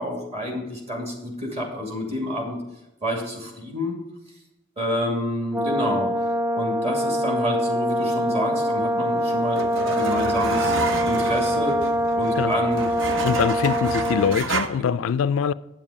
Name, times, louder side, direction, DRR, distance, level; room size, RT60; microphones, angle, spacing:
voice 1, 0.0-2.6 3.0-4.0 4.8-6.1 6.5-10.7 11.0-11.8 12.1-12.8, left 1 dB, 30° right, 2.5 m, -28 dB
Brass instrument, 5.5-14.4, equal, 10° right, 0.4 m, -24 dB
sound 1, 8.8-14.7, right 3 dB, 65° right, 0.8 m, -30 dB
voice 2, 13.2-15.5, left 7 dB, 80° left, 0.3 m, -23 dB
8.8 x 7.3 x 5.0 m
head